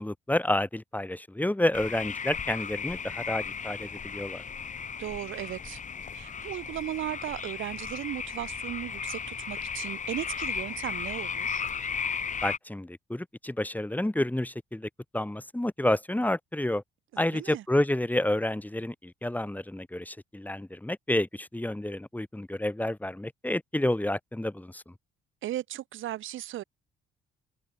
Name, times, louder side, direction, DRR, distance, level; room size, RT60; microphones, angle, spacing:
voice 1, 0.0-4.4 12.4-16.8 17.2-24.9, left 1 dB, 10° left, 6.7 m, -30 dB
sound 1, 1.7-12.6, left 6 dB, 40° left, 1.7 m, -35 dB
voice 2, 5.0-5.8 6.1-11.6 17.1-17.6 25.4-26.6, right 13 dB, 80° right, 3.1 m, -36 dB
cardioid pair, 90°, 20 cm